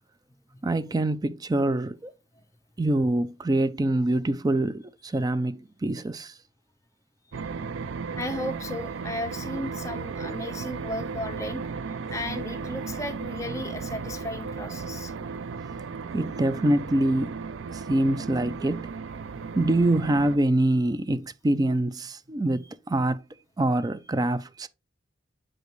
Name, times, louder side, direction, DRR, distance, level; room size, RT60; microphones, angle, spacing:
voice 1, 0.6-2.1 2.8-6.3 16.1-17.4 17.7-18.9 19.5-23.2 23.6-24.7, right 1 dB, 20° right, 0.4 m, -25 dB
sound 1, 7.3-20.4, right 5 dB, 85° right, 0.4 m, -35 dB
voice 2, 8.1-11.6 12.1-15.1, left 1 dB, 15° left, 0.9 m, -35 dB
7.3 x 5.1 x 3.1 m
head